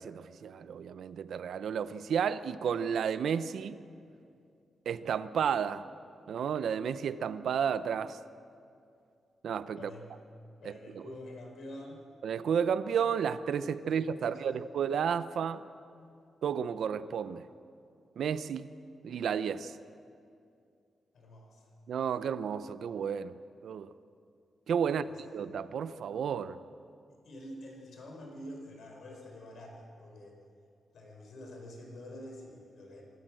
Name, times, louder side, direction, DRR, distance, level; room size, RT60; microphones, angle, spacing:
voice 1, 0.0-3.8 4.9-5.8 6.3-8.2 9.4-9.9 10.6-11.0 12.2-15.6 16.4-17.5 18.2-18.7 19.0-19.8 21.9-23.9 24.7-26.6, right 7 dB, 70° right, 13 dB, 0.7 m, -32 dB
voice 2, 9.7-10.1 10.6-12.0 13.8-14.6 21.1-21.7 24.9-25.2 27.1-30.4 30.9-33.0, left 1 dB, 65° left, 1 dB, 5.0 m, -47 dB
26.5 x 13.5 x 7.7 m, 2.4 s
wide cardioid pair, 170°, 0 cm